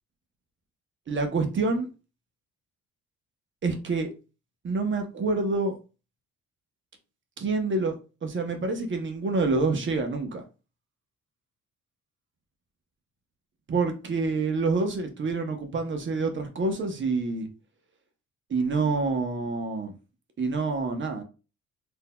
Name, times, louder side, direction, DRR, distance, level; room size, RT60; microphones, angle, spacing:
voice 1, 1.1-1.9 3.6-4.1 4.6-5.8 7.4-7.9 8.2-10.4 13.7-17.5 18.5-19.9 20.4-21.2, right 3 dB, 40° right, 0.8 m, -27 dB
4.0 x 2.7 x 2.2 m
cardioid pair, 90°, 30 cm